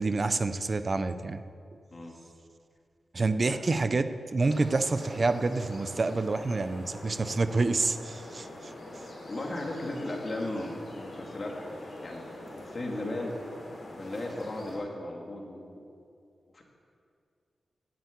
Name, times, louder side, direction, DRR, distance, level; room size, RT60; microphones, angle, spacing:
voice 1, 0.0-1.4 3.1-8.7, right 3 dB, 35° right, 11 dB, 0.6 m, -28 dB
sound 1, 4.4-14.8, left 1 dB, 60° left, 3.6 m, -44 dB
voice 2, 9.3-11.7 12.0-13.3 13.9-15.8 16.5-16.6, left 1 dB, 35° left, 0 dB, 2.1 m, -36 dB
10.0 x 9.0 x 8.4 m, 2.4 s
wide cardioid pair, 135°, 0 cm